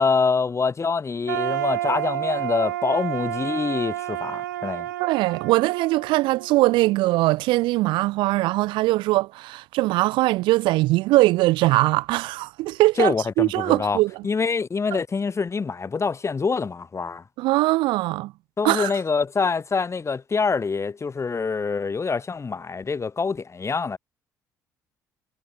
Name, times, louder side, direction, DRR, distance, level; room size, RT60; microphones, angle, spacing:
voice 1, 0.0-4.9 13.0-17.2 18.6-24.0, left 5 dB, 30° left, 4.5 m, -25 dB
sound 1, 1.3-7.2, right 14 dB, 75° right, 2.2 m, -30 dB
voice 2, 5.0-14.1 14.9-15.0 17.4-18.3 18.6-18.9, right 19 dB, 55° right, 0.4 m, -21 dB
figure-of-eight pair, 50°, 10 cm